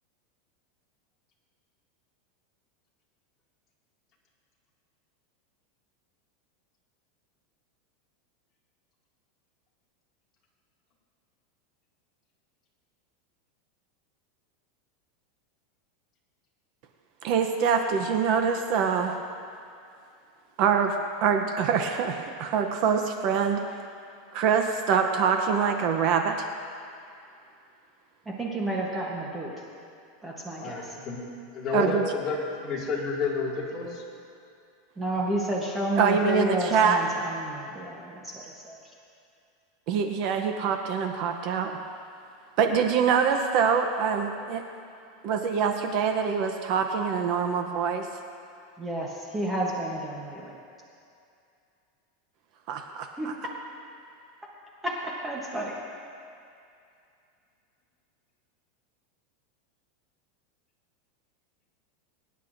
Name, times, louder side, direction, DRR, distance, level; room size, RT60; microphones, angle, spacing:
voice 1, 17.2-19.1 20.6-20.9 21.2-23.6 24.3-26.5 31.7-32.0 36.0-37.0 39.9-41.7 42.6-44.6 45.2-48.1 52.7-53.3, right 6 dB, 40° right, 5 dB, 0.7 m, -24 dB
voice 2, 28.3-29.5 30.2-30.9 35.0-38.8 48.8-50.6 53.2-53.3 54.8-54.9 55.2-55.8, right 1 dB, 10° right, -3 dB, 1.0 m, -31 dB
voice 3, 30.6-31.2 31.5-34.0, left 4 dB, 25° left, -5 dB, 2.2 m, -30 dB
23.0 x 10.5 x 2.6 m, 2.5 s
supercardioid pair, 170°, 0 cm